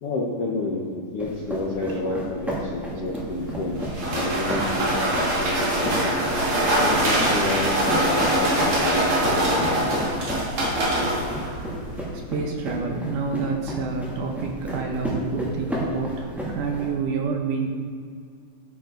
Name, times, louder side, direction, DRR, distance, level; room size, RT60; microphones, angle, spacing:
voice 1, 0.0-6.1 6.8-10.0, left 2 dB, 65° left, -4 dB, 1.5 m, -30 dB
sound 1, 1.2-16.9, equal, ahead, 1.8 m, -33 dB
sound 2, 3.3-12.0, right 1 dB, 50° right, 3.3 m, -23 dB
voice 2, 12.1-17.7, right 4 dB, 70° right, 2 dB, 2.2 m, -28 dB
12.5 x 9.3 x 4.0 m, 2.1 s
omnidirectional pair, 4.3 m